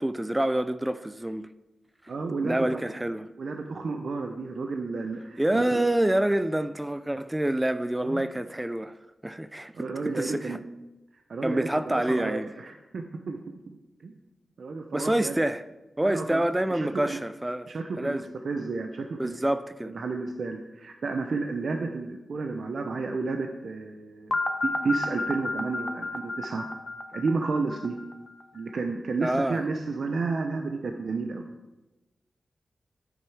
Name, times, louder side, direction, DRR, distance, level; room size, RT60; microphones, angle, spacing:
voice 1, 0.0-1.5 2.4-3.3 5.4-8.9 9.2-10.6 11.4-12.5 14.9-15.6 16.0-17.7 18.0-18.3 19.2-19.9 29.2-29.6, right 1 dB, 15° right, 0.5 m, -27 dB
voice 2, 2.1-2.8 3.4-5.8 8.0-8.2 9.7-10.6 11.3-13.4 14.0-14.1 14.6-15.4 16.0-16.4 16.7-17.2 17.7-19.4 19.8-26.7 27.1-27.9 28.5-31.4, right 4 dB, 70° right, 0.8 m, -32 dB
sound 1, 24.3-28.3, left 2 dB, 40° left, 1.1 m, -31 dB
10.5 x 9.2 x 4.8 m
cardioid pair, 70°, 0 cm